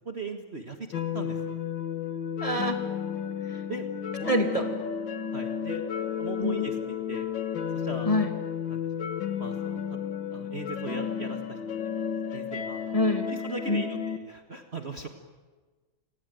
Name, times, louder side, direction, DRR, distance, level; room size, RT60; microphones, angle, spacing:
voice 1, 0.0-1.5 3.7-3.9 4.2-4.6 5.3-5.8 6.2-7.3 7.6-8.1 8.7-9.1 9.4-10.0 10.3-11.6 12.0-12.8 13.3-15.1, right 3 dB, 35° right, 4 dB, 1.6 m, -39 dB
sound 1, 0.9-14.2, left 8 dB, 70° left, 2.2 m, -32 dB
voice 2, 2.4-2.8 3.5-3.6 4.3-4.6 6.4-6.7 8.1-8.3 12.9-13.3 13.7-13.8, left 1 dB, 15° left, 4 dB, 2.3 m, -26 dB
29.5 x 18.5 x 9.2 m, 1.4 s
omnidirectional pair, 2.1 m